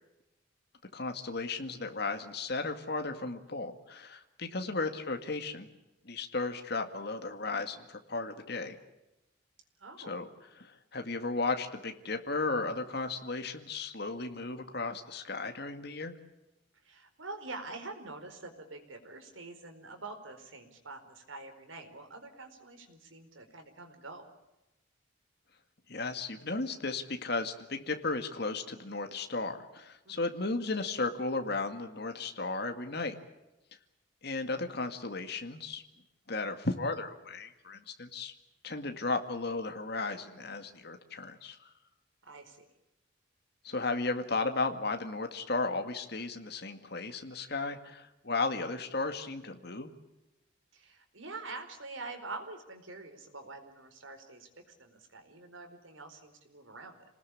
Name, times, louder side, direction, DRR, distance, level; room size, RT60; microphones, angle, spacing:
voice 1, 0.9-5.7 6.1-8.8 10.0-10.3 10.6-16.2 25.9-33.1 34.2-35.8 36.3-38.3 38.6-41.6 43.6-49.9, left 3 dB, 55° left, 6 dB, 2.1 m, -35 dB
voice 2, 9.8-10.2 16.8-24.2 30.0-30.3 42.2-42.6 50.7-57.1, right 3 dB, 85° right, 5 dB, 4.6 m, -46 dB
27.5 x 19.5 x 8.4 m, 0.96 s
head